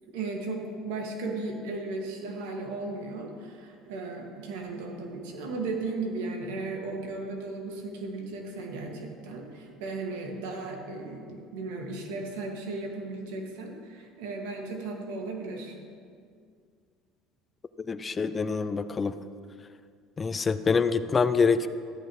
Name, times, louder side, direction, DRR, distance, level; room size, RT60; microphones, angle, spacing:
voice 1, 0.1-15.8, right 3 dB, 90° right, 1 dB, 2.0 m, -36 dB
voice 2, 17.9-19.1 20.2-21.7, left 5 dB, 25° left, 13 dB, 0.5 m, -25 dB
14.0 x 13.0 x 3.2 m, 2.2 s
supercardioid pair, 110°, 0 cm